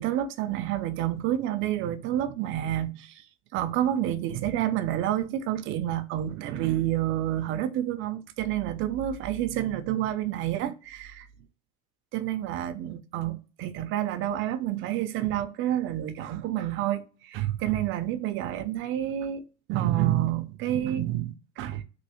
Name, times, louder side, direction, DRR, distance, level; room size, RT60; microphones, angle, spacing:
voice 1, 0.0-3.2 3.5-11.3 12.1-21.8, right 12 dB, 45° right, 0.4 m, -29 dB
3.1 x 2.7 x 2.9 m
cardioid pair, 170°, 29 cm